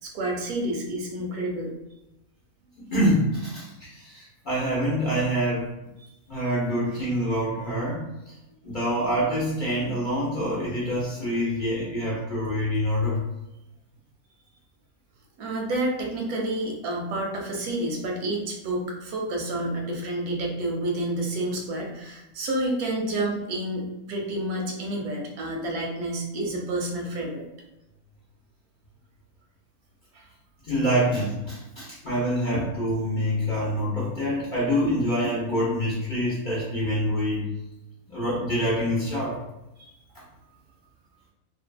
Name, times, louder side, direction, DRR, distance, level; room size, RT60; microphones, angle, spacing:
voice 1, 0.0-1.7 15.4-27.4 30.1-30.2, right 1 dB, 85° right, 0 dB, 1.1 m, -29 dB
voice 2, 2.8-5.7 6.3-8.3 8.6-13.2 30.6-37.4 38.1-39.4, equal, 45° left, -8 dB, 0.6 m, -26 dB
2.6 x 2.4 x 2.2 m, 0.92 s
omnidirectional pair, 1.6 m